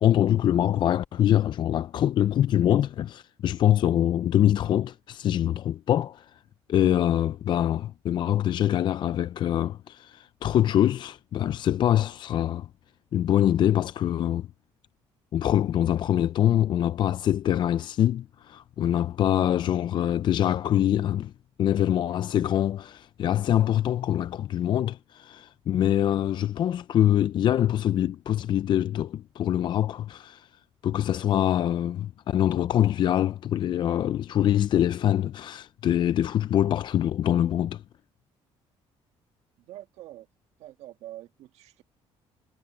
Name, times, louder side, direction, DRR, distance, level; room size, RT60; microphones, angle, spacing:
voice 1, 0.0-6.3 6.7-12.7 13.1-14.5 15.3-21.3 21.6-30.5 30.8-37.8, left 11 dB, 45° left, 0.4 m, -24 dB
voice 2, 39.6-40.3 40.6-41.8, right 14 dB, 85° right, 1.6 m, -45 dB
cardioid pair, 130°, 11 cm